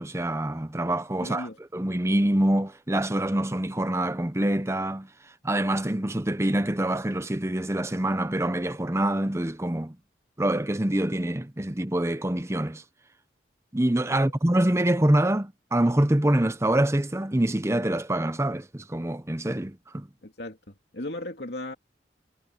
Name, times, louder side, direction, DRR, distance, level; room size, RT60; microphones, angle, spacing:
voice 1, 0.0-1.5 1.7-5.1 5.4-10.0 10.4-12.8 13.7-20.1, right 1 dB, 15° right, 0.7 m, -25 dB
voice 2, 1.2-1.6 14.2-14.3 20.2-21.8, left 1 dB, 60° left, 2.8 m, -36 dB
head